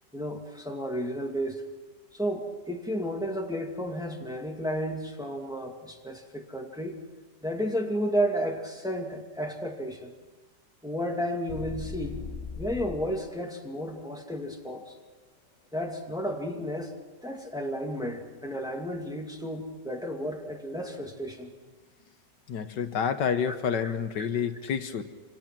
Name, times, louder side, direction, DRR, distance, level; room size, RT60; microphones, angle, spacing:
voice 1, 0.1-1.6 2.1-7.0 7.4-10.1 10.8-12.2 12.6-15.0 15.7-16.9 17.2-21.5 23.7-24.3, equal, ahead, 1 dB, 2.2 m, -32 dB
sound 1, 11.5-13.2, left 4 dB, 45° left, 1.5 m, -38 dB
voice 2, 22.5-25.0, left 7 dB, 75° left, 8 dB, 1.7 m, -29 dB
27.5 x 26.0 x 6.1 m, 1.3 s
omnidirectional pair, 1.9 m